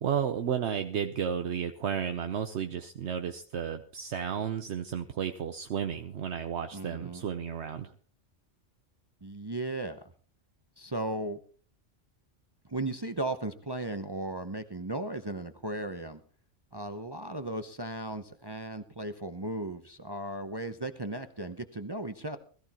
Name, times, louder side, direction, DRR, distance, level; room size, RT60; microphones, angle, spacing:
voice 1, 0.0-7.9, right 8 dB, 70° right, 7 dB, 1.1 m, -33 dB
voice 2, 6.7-7.2 9.2-10.0 10.8-11.4 12.7-16.2 16.7-22.4, right 2 dB, 25° right, 8 dB, 0.7 m, -36 dB
20.5 x 14.5 x 3.0 m, 0.42 s
omnidirectional pair, 1.2 m